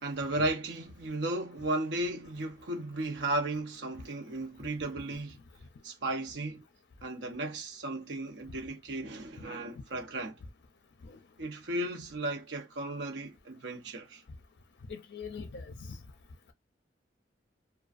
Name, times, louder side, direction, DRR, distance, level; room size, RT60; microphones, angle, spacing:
voice 1, 0.0-5.4 5.8-6.6 7.0-10.4 11.4-14.2, right 2 dB, 70° right, 0.7 m, -35 dB
voice 2, 14.9-16.0, left 5 dB, 65° left, 0.5 m, -42 dB
2.4 x 2.2 x 2.4 m
head